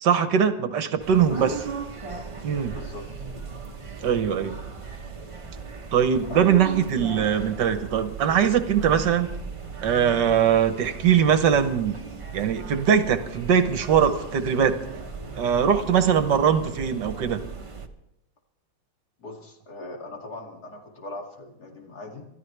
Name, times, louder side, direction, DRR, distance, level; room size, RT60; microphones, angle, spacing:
voice 1, 0.0-1.5 2.4-2.8 4.0-4.5 5.9-9.3 9.8-12.0 12.3-14.8 15.4-17.4, right 8 dB, 70° right, 9 dB, 1.5 m, -21 dB
sound 1, 1.0-17.9, right 4 dB, 25° right, 0.7 m, -37 dB
voice 2, 1.3-1.6 2.7-3.2 6.3-6.4 19.2-22.3, left 2 dB, 55° left, 1 dB, 2.9 m, -40 dB
27.0 x 13.0 x 3.3 m, 0.85 s
omnidirectional pair, 2.0 m